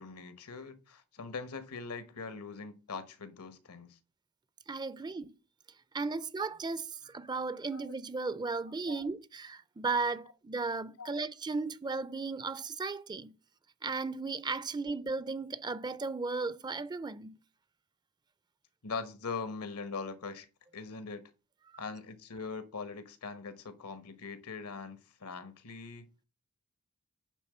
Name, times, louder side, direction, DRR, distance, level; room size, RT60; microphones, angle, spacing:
voice 1, 0.0-4.0 7.7-7.9 8.6-9.0 11.0-11.2 18.8-20.5 20.7-21.2 21.8-26.1, left 4 dB, 80° left, 1.1 m, -42 dB
voice 2, 4.7-5.3 5.9-13.3 13.8-17.4, right 4 dB, 20° right, 0.4 m, -35 dB
9.9 x 3.7 x 6.7 m
head